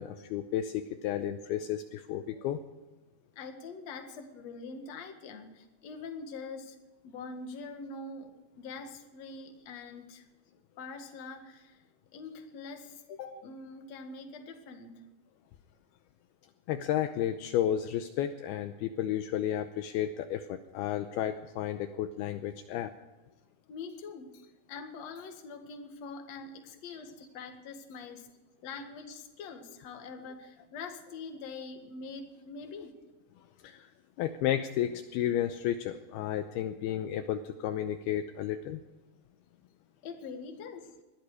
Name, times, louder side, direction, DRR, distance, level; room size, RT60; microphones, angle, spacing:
voice 1, 0.0-2.6 16.7-22.9 33.6-33.9 34.2-38.8, left 11 dB, 80° left, 8 dB, 2.4 m, -32 dB
voice 2, 3.4-6.8 7.0-10.2 10.8-11.8 12.1-15.0 23.7-28.3 28.6-33.0 40.0-40.9, left 4 dB, 50° left, 5 dB, 2.3 m, -44 dB
21.0 x 13.5 x 4.9 m, 1.2 s
omnidirectional pair, 4.9 m